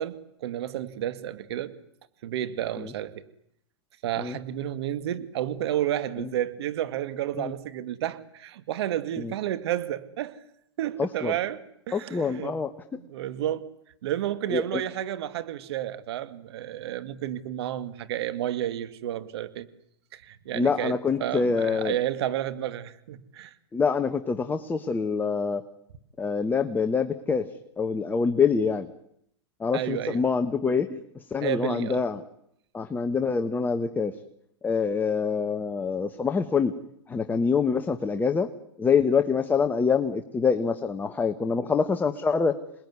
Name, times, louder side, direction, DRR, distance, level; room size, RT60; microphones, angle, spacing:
voice 1, 0.0-1.7 2.2-3.2 4.0-10.4 10.8-12.6 12.9-13.7 14.0-19.7 20.1-23.5 29.7-30.2 31.4-32.1, right 12 dB, 65° right, 2.1 m, -31 dB
voice 2, 11.0-11.3 11.9-12.7 14.5-14.8 20.5-22.0 23.7-25.6 26.2-27.5 27.8-28.9 29.6-32.2 32.7-34.1 34.6-36.7 37.1-38.5 38.8-42.6, left 5 dB, 10° left, 1.3 m, -25 dB
27.5 x 20.5 x 9.7 m
hypercardioid pair, 130°, 15 cm